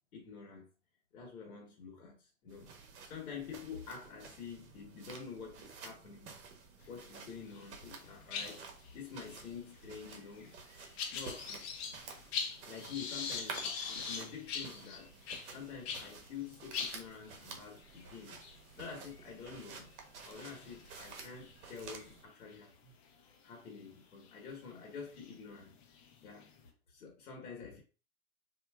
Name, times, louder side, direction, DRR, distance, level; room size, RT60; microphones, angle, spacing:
voice 1, 0.1-0.7 1.1-2.7 3.1-6.3 6.9-8.6 8.9-10.5 11.1-11.6 12.6-15.1 15.5-18.4 18.8-19.9 20.3-22.9 23.4-25.7 26.2-26.5 26.9-27.8, left 6 dB, 85° left, 1.2 m, -47 dB
sound 1, 2.5-22.2, right 5 dB, 55° right, 1.0 m, -52 dB
sound 2, 7.2-7.7 7.9-16.1 16.5-16.6 16.7-22.6 23.1-23.4 24.2-24.3 24.9-26.7, left 6 dB, 45° left, 0.9 m, -43 dB
4.2 x 2.7 x 2.3 m
hypercardioid pair, 145°, 42 cm